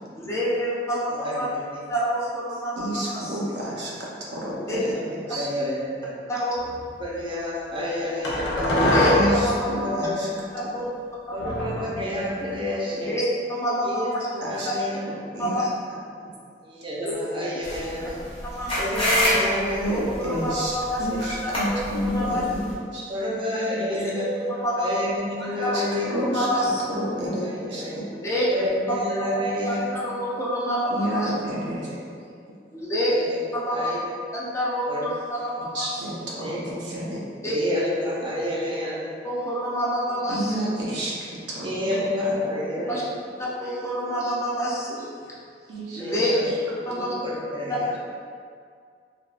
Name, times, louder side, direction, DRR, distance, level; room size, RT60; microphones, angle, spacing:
voice 1, 0.2-1.5 1.9-3.4 4.7-4.8 6.3-6.6 8.8-10.0 10.7-10.9 11.3-11.5 12.9-14.3 15.4-15.7 17.0-17.2 18.4-19.0 19.9-21.7 22.1-22.4 24.1-25.0 25.4-27.0 28.2-28.6 29.3-31.3 32.7-33.1 33.5-33.9 34.3-36.2 37.4-37.5 39.2-40.7 42.9-43.0 43.6-45.3 45.9-46.3 46.9-47.2, equal, 15° left, -6 dB, 0.5 m, -28 dB
voice 2, 1.1-1.6 4.8-6.1 7.0-8.7 9.2-10.3 11.3-13.2 13.8-15.1 16.6-18.2 18.8-20.1 21.1-21.2 23.1-24.3 24.8-26.2 27.2-28.0 28.5-29.9 31.0-31.1 31.9-32.2 33.1-33.4 33.7-34.0 34.9-35.1 36.4-36.8 37.5-39.1 41.6-43.0 46.0-46.5 47.2-47.9, left 1 dB, 30° right, -5 dB, 0.6 m, -29 dB
voice 3, 2.8-3.9 4.3-4.9 5.3-5.5 8.6-10.3 14.4-14.7 15.3-15.5 19.8-22.7 22.9-23.1 25.7-25.8 26.1-26.5 26.9-28.0 30.9-31.9 35.7-37.2 40.3-41.1 41.5-41.7 42.2-42.3 45.7-46.0, right 1 dB, 75° right, -5 dB, 0.6 m, -29 dB
sound 1, 6.6-6.9 8.2-9.5 11.4-12.6, left 1 dB, 75° left, 0.6 m, -24 dB
sound 2, 17.6-22.7, equal, 30° left, 0.9 m, -28 dB
3.4 x 2.3 x 2.4 m, 2.2 s
head